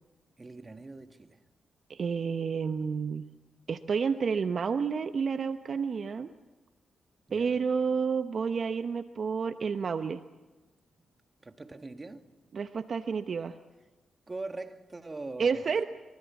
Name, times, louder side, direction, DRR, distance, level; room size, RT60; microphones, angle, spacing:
voice 1, 0.4-1.4 7.3-7.7 11.4-12.3 14.3-15.7, right 2 dB, 30° right, 2.0 m, -42 dB
voice 2, 1.9-3.3 3.7-6.3 7.3-10.2 12.5-13.5 15.4-15.8, right 5 dB, 60° right, 0.9 m, -30 dB
25.0 x 24.0 x 7.3 m
supercardioid pair, 50°, 0 cm